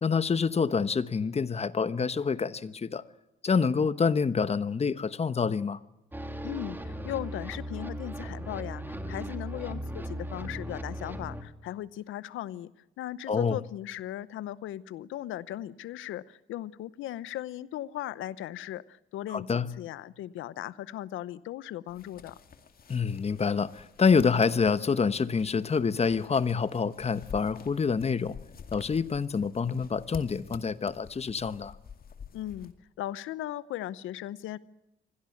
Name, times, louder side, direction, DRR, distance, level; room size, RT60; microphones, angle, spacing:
voice 1, 0.0-3.0 3.4-5.8 13.3-13.6 19.3-19.7 22.9-28.4 28.7-31.7, left 5 dB, 30° left, 1.1 m, -27 dB
sound 1, 6.1-11.4, equal, 10° right, 2.6 m, -37 dB
voice 2, 6.4-12.7 13.0-22.4 32.3-34.6, left 13 dB, 85° left, 0.8 m, -38 dB
sound 2, 21.9-32.7, left 6 dB, 50° left, 2.2 m, -49 dB
25.0 x 16.5 x 8.5 m
cardioid pair, 90°, 20 cm